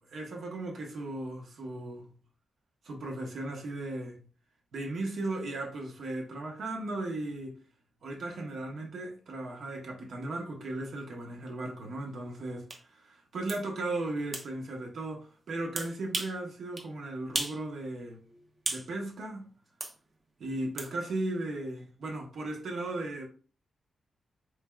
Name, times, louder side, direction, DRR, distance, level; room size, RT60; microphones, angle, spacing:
voice 1, 0.1-2.1 2.8-4.2 4.7-7.6 8.0-18.2 18.7-19.5 20.4-23.3, right 2 dB, 75° right, 1.1 m, -36 dB
sound 1, 12.7-12.8 13.5-13.6 14.3-14.5 15.8-16.4 16.8-16.9 17.3-17.6 18.0-18.9 19.8-20.0 20.8-20.9, right 2 dB, 35° right, 0.8 m, -35 dB
4.4 x 3.3 x 2.3 m
cardioid pair, 105°, 0 cm